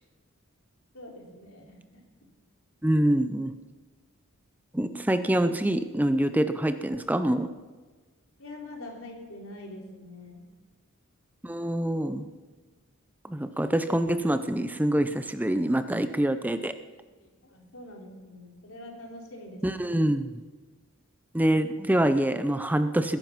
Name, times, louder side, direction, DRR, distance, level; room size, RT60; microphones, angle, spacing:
voice 1, 0.9-2.0 8.4-10.4 15.5-15.6 16.6-20.0, left 1 dB, 80° left, 0 dB, 3.6 m, -45 dB
voice 2, 2.8-3.6 4.7-7.5 11.4-12.2 13.2-16.7 19.6-20.3 21.3-23.2, right 1 dB, 10° right, 11 dB, 0.5 m, -25 dB
21.0 x 10.5 x 5.9 m, 1.3 s
head